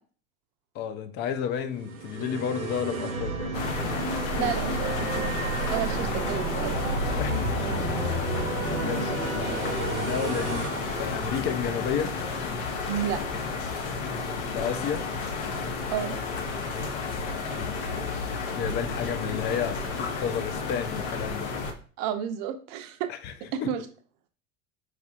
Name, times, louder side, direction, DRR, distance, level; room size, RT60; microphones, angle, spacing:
voice 1, 0.7-3.5 4.3-4.5 7.1-7.7 8.2-12.2 14.5-15.1 17.5-19.8 20.2-21.5 23.1-23.3 23.6-23.7, left 8 dB, 30° left, 9 dB, 0.3 m, -32 dB
sound 1, 1.7-11.9, right 3 dB, 85° right, 0.7 m, -32 dB
sound 2, 3.5-21.7, left 4 dB, 60° left, 0.7 m, -31 dB
voice 2, 4.4-5.3 5.7-6.9 12.9-13.2 15.9-16.1 22.0-23.1 23.5-23.8, right 10 dB, 45° right, 8 dB, 0.5 m, -31 dB
4.6 x 2.4 x 2.4 m, 0.40 s
hypercardioid pair, 85°, 40 cm